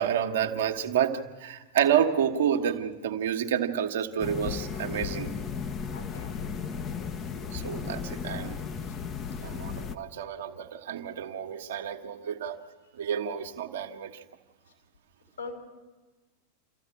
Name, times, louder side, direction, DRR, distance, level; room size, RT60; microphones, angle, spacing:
voice 1, 0.0-5.3 7.5-8.6 9.4-12.6 12.9-14.2, right 9 dB, 60° right, 5 dB, 1.5 m, -29 dB
sound 1, 4.2-10.0, left 6 dB, 30° left, 1.2 m, -35 dB
voice 2, 5.9-6.6 8.8-9.0 15.4-15.5, left 4 dB, 70° left, 2 dB, 6.1 m, -42 dB
27.5 x 14.5 x 8.6 m, 1.2 s
figure-of-eight pair, 90°, 0 cm